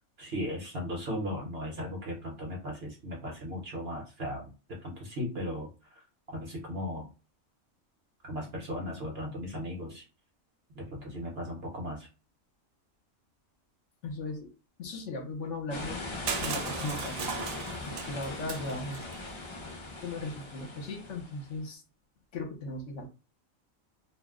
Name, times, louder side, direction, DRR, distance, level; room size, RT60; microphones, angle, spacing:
voice 1, 0.2-6.0 6.3-7.1 8.2-10.0 10.7-12.1, equal, 55° right, 0 dB, 1.0 m, -37 dB
voice 2, 14.0-14.5 14.8-16.0 16.4-17.4 17.9-19.0 20.0-21.8 22.3-23.1, left 2 dB, 65° left, 2 dB, 1.0 m, -37 dB
sound 1, 15.7-21.6, left 2 dB, 50° left, 0.3 m, -40 dB
Crushing, 16.3-19.2, right 7 dB, 85° right, 1.0 m, -37 dB
2.5 x 2.0 x 3.5 m, 0.32 s
omnidirectional pair, 1.4 m